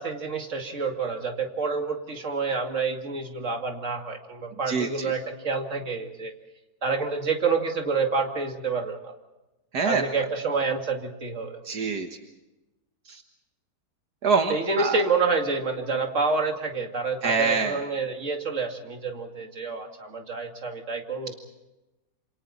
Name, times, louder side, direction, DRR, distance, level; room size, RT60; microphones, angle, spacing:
voice 1, 0.0-6.3 6.8-9.1 9.8-11.6 14.5-21.4, right 4 dB, 50° right, 3 dB, 2.7 m, -28 dB
voice 2, 4.7-5.1 9.7-10.0 11.7-12.1 13.1-13.2 14.2-14.9 17.2-17.8, right 5 dB, 75° right, 5 dB, 1.9 m, -25 dB
28.0 x 27.5 x 4.2 m, 1.0 s
omnidirectional pair, 1.7 m